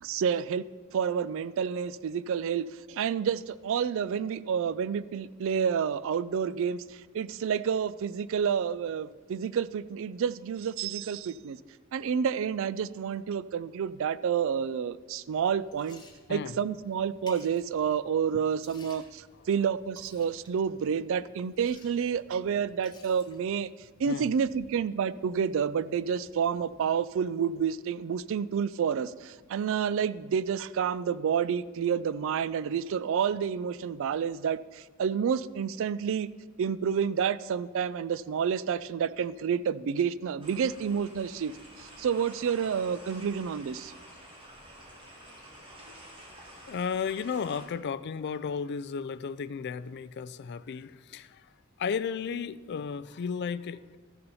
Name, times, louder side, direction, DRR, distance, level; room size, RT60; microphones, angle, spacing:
voice 1, 0.0-0.6 0.9-11.6 11.9-16.0 16.3-23.7 24.0-36.3 36.6-43.9, right 7 dB, 65° right, 17 dB, 0.3 m, -29 dB
Liquid, 15.3-27.6, left 2 dB, 20° left, 1.3 m, -58 dB
sound 1, 40.4-47.7, right 1 dB, 25° right, 2.1 m, -50 dB
voice 2, 46.7-51.5 51.8-54.0, left 6 dB, 55° left, 17 dB, 0.4 m, -34 dB
14.0 x 6.8 x 5.5 m, 1.4 s
head